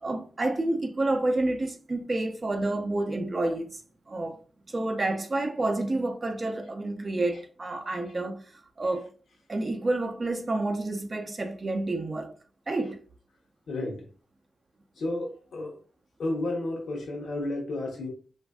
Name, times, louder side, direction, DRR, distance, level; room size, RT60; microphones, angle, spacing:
voice 1, 0.0-3.8 4.1-4.4 4.7-9.1 9.5-12.3 12.7-13.0, right 2 dB, 35° right, 0.5 m, -29 dB
voice 2, 13.7-14.1 15.0-15.7 16.2-18.1, left 2 dB, 85° left, 0.9 m, -32 dB
3.2 x 2.5 x 2.3 m
wide cardioid pair, 100°, 0 cm